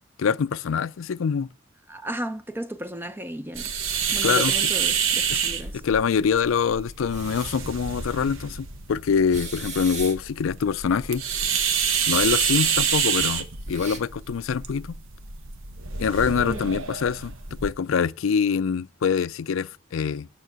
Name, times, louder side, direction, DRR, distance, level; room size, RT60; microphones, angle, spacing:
voice 1, 0.2-1.5 4.2-4.5 5.3-5.4 5.7-11.2 12.1-15.0 16.0-17.3 17.6-20.3, left 6 dB, 85° left, 0.4 m, -24 dB
voice 2, 1.9-3.7 4.1-5.8 16.5-16.7, right 1 dB, 10° right, 0.5 m, -34 dB
sound 1, 3.6-17.7, right 7 dB, 75° right, 1.0 m, -28 dB
sound 2, 4.8-5.9 6.3-6.4 6.9-7.9 8.3-8.4 9.2-10.4 12.0-14.0, right 4 dB, 35° right, 1.5 m, -39 dB
9.3 x 6.0 x 7.4 m
head